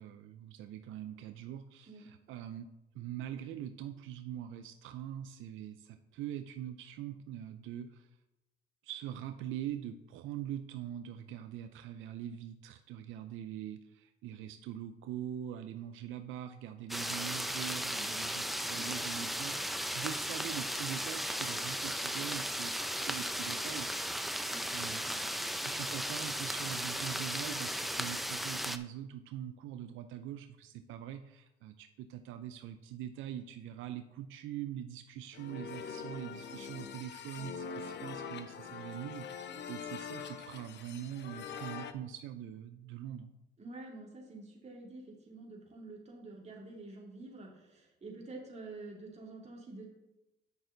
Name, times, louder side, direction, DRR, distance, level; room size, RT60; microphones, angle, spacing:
voice 1, 0.0-2.7 2.9-8.1 8.8-23.9 24.7-43.3, right 10 dB, 90° right, 9 dB, 0.5 m, -43 dB
sound 1, 16.9-28.8, equal, ahead, 0.5 m, -36 dB
voice 2, 24.5-25.2 43.6-49.8, right 2 dB, 35° right, -2 dB, 2.8 m, -48 dB
sound 2, 35.3-41.9, left 6 dB, 60° left, 0.8 m, -44 dB
9.0 x 6.1 x 3.9 m, 0.95 s
cardioid pair, 90°, 20 cm